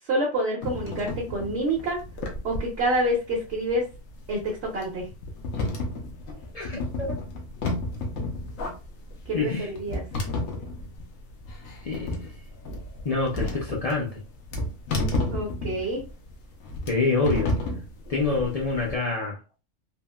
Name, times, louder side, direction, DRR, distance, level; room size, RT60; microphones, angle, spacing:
voice 1, 0.1-2.0 2.4-3.8 4.3-4.4 4.7-5.0 9.3-10.0 15.3-16.1, right 1 dB, 65° right, 1.0 m, -27 dB
sound 1, 0.6-18.9, left 2 dB, 90° left, 1.1 m, -32 dB
voice 2, 6.5-7.2 9.3-9.7 11.8-12.2 13.0-14.2 16.9-17.6 18.1-19.4, left 3 dB, 60° left, 0.4 m, -26 dB
3.7 x 2.1 x 2.2 m
omnidirectional pair, 1.3 m